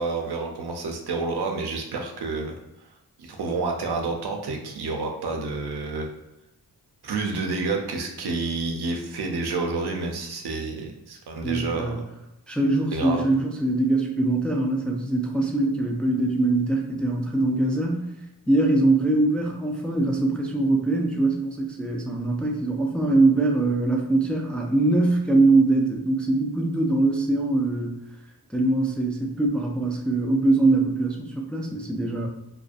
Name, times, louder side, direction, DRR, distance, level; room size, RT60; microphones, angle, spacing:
voice 1, 0.0-2.6 3.2-6.1 7.0-12.0 12.9-13.2, right 3 dB, 75° right, 2 dB, 0.5 m, -29 dB
voice 2, 11.4-12.0 12.5-18.1 18.5-28.0 28.5-32.3, right 2 dB, 5° left, 0 dB, 0.3 m, -22 dB
2.5 x 2.1 x 2.4 m, 0.92 s
cardioid pair, 50°, 40 cm